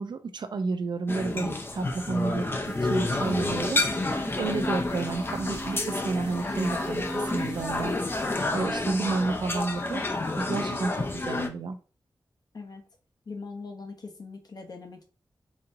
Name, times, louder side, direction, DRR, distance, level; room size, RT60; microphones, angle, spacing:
voice 1, 0.0-2.5 2.8-8.0 8.5-11.8, right 3 dB, 75° right, 9 dB, 0.5 m, -31 dB
sound 1, 1.1-11.5, left 2 dB, 30° left, 0.5 m, -30 dB
sound 2, 2.6-8.6, right 1 dB, 10° right, 0.7 m, -40 dB
voice 2, 13.3-15.0, left 4 dB, 60° left, 3 dB, 0.8 m, -41 dB
4.2 x 2.7 x 2.6 m, 0.37 s
wide cardioid pair, 110°, 8 cm